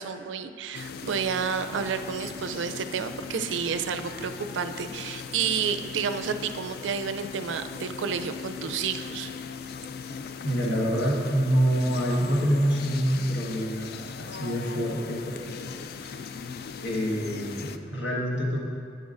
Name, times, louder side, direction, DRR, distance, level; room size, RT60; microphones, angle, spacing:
voice 1, 0.0-9.3, right 6 dB, 85° right, 9 dB, 0.4 m, -30 dB
sound 1, 0.7-17.8, left 6 dB, 55° left, 0.3 m, -39 dB
voice 2, 10.4-15.6 16.0-16.3 16.8-18.6, equal, 75° left, -3 dB, 1.5 m, -26 dB
11.0 x 9.1 x 2.5 m, 2.4 s
head